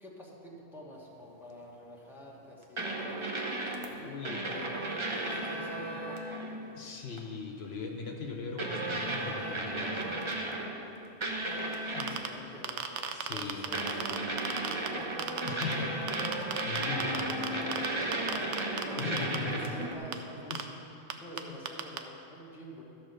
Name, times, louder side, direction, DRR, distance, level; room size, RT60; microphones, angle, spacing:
voice 1, 0.0-3.2 4.2-6.4 11.9-12.9 13.3-14.0 14.3-15.1 18.2-19.1 19.4-20.6 21.2-22.8, equal, ahead, -4 dB, 1.2 m, -48 dB
sound 1, 2.8-3.9 4.2-6.6 7.1-7.3 8.6-10.9 11.2-12.3 13.7-20.0, right 1 dB, 30° right, 0.7 m, -34 dB
voice 2, 4.0-4.4 6.7-10.1 11.9-12.2 13.1-13.7 15.5-17.5 17.8-18.0 19.0-19.8 20.5-20.7 21.5-21.6, left 4 dB, 65° left, 2 dB, 1.0 m, -39 dB
sound 2, 11.9-12.3 12.6-14.9 15.2-15.6 16.1-17.9 18.1-19.4 20.1-20.2 20.5-20.6 21.1-21.2 21.4-21.5 21.7-22.0, right 9 dB, 85° right, 0.9 m, -33 dB
13.0 x 4.3 x 6.5 m, 2.9 s
omnidirectional pair, 1.2 m